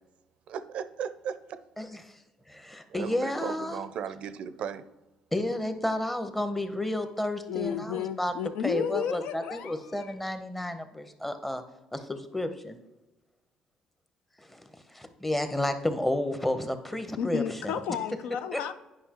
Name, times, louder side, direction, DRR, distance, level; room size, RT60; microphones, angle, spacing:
voice 1, 0.5-1.6 2.9-4.8, right 7 dB, 65° right, 13 dB, 0.5 m, -36 dB
voice 2, 1.8-2.2 2.5-3.8 5.3-8.3 8.6-11.6 11.9-12.8 14.4-17.7 18.5-18.6, left 1 dB, 10° left, 8 dB, 0.7 m, -31 dB
voice 3, 7.5-10.1 17.2-18.7, left 8 dB, 80° left, 11 dB, 0.4 m, -33 dB
9.5 x 5.2 x 2.9 m, 1.1 s
cardioid pair, 100°, 2 cm